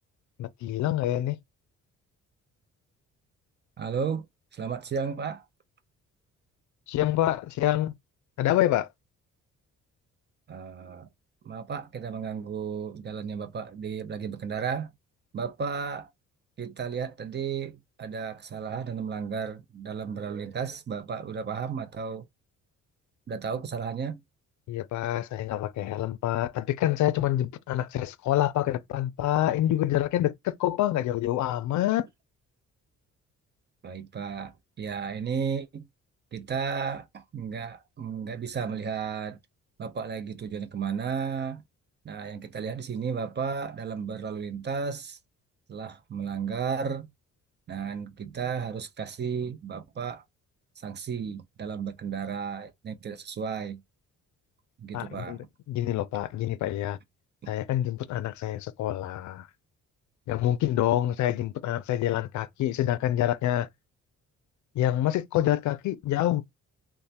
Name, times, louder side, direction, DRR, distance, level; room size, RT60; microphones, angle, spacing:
voice 1, 0.4-1.4 6.9-7.9 8.4-8.9 24.7-32.1 54.9-55.4 55.7-57.0 57.5-59.5 60.3-63.7 64.8-66.4, left 13 dB, 70° left, 0.5 m, -27 dB
voice 2, 3.8-4.3 4.5-5.5 10.5-11.1 11.4-14.9 15.3-16.1 16.6-22.3 23.3-24.2 33.8-35.9 36.3-39.4 39.8-41.6 42.0-45.2 45.7-47.1 47.7-50.2 50.8-53.8 54.8-55.4 57.4-57.5, right 6 dB, 35° right, 0.6 m, -33 dB
3.1 x 2.1 x 2.8 m
cardioid pair, 90°, 30 cm